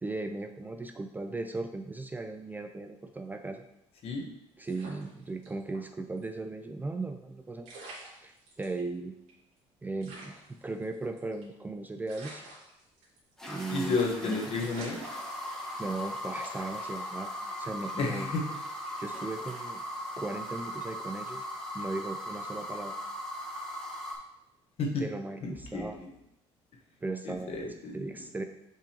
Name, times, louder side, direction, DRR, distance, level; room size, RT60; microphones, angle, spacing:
voice 1, 0.0-3.6 4.6-7.8 8.2-9.1 9.8-12.5 13.5-14.0 14.2-14.4 15.8-17.3 17.6-18.3 19.0-19.8 20.1-21.4 21.7-22.9 25.0-26.0 27.0-27.6 27.9-28.4, right 3 dB, 15° right, 5 dB, 0.4 m, -37 dB
sound 1, 4.6-5.8 6.2-6.3 7.3-7.4 7.6-8.8 9.3-9.4 9.6-9.7 10.0-11.6 12.1-13.3 13.6-13.9 14.2-14.3 14.6-16.0 16.4-16.7, right 2 dB, 85° right, 2.3 m, -47 dB
sound 2, 13.4-24.1, equal, 5° left, 1.5 m, -39 dB
voice 2, 13.7-15.0 18.0-18.5 24.8-25.0 25.4-26.1 27.2-28.1, left 3 dB, 55° left, 1 dB, 1.2 m, -32 dB
7.3 x 5.2 x 2.9 m, 0.84 s
cardioid pair, 120°, 12 cm